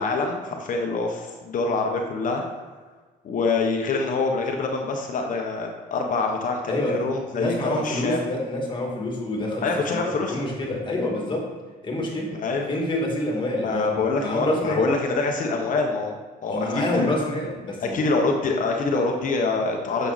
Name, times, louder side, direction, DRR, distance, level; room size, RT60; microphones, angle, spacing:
voice 1, 0.0-2.4 3.2-8.3 9.6-10.4 12.3-12.7 13.6-17.1 17.8-20.1, left 3 dB, 50° left, 2 dB, 1.2 m, -25 dB
voice 2, 6.7-7.0 7.3-11.5 11.8-12.3 12.7-14.9 16.5-18.0, left 1 dB, 30° left, 0 dB, 2.2 m, -27 dB
8.9 x 6.8 x 4.2 m, 1.3 s
cardioid pair, 110°, 17 cm